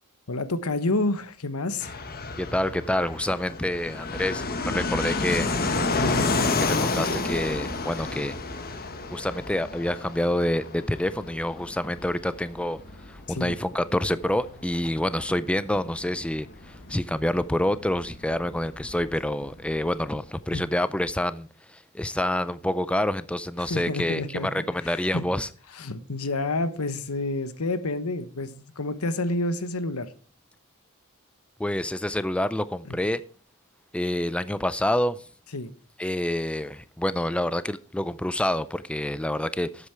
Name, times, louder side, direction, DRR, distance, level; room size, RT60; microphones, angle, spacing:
voice 1, 0.3-1.9 5.9-6.3 13.3-13.6 20.5-20.6 23.7-24.5 24.8-25.2 25.7-30.1 32.9-33.0 35.5-35.7, left 2 dB, 85° left, 1.1 m, -29 dB
Fixed-wing aircraft airplane, 1.8-20.2, left 3 dB, 45° left, 1.3 m, -31 dB
voice 2, 2.4-5.5 6.6-8.3 9.1-12.8 13.1-25.5 31.6-33.2 33.9-35.2 36.0-39.9, left 1 dB, 5° left, 0.4 m, -27 dB
12.0 x 8.2 x 4.6 m
head